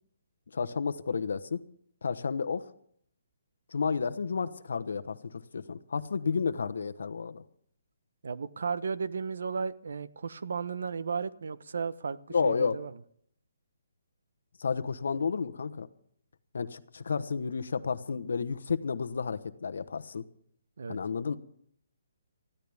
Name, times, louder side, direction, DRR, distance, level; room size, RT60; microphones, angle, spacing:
voice 1, 0.5-1.6 2.0-2.7 3.7-7.4 12.3-12.8 14.6-15.9 16.5-20.2 20.9-21.4, left 5 dB, 65° left, 11 dB, 1.1 m, -31 dB
voice 2, 8.2-12.2 12.4-12.9 20.8-21.0, right 5 dB, 65° right, 14 dB, 0.9 m, -34 dB
20.0 x 14.5 x 3.6 m, 0.65 s
hypercardioid pair, 175°, 0 cm